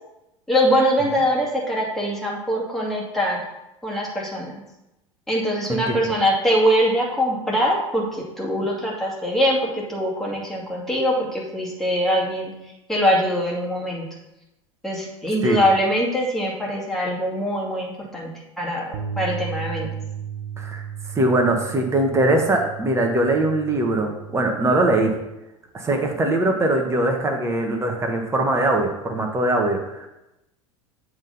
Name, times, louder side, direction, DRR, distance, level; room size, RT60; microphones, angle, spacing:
voice 1, 0.5-3.4 3.8-4.6 5.3-12.5 12.9-14.1 14.8-18.3 18.6-19.9, equal, ahead, -4 dB, 2.3 m, -23 dB
Bass guitar, 18.9-25.2, right 8 dB, 60° right, 1.0 m, -35 dB
voice 2, 21.1-25.1 25.7-30.1, right 2 dB, 15° right, 2 dB, 1.4 m, -21 dB
8.0 x 3.7 x 5.5 m, 0.93 s
figure-of-eight pair, 80°, 17 cm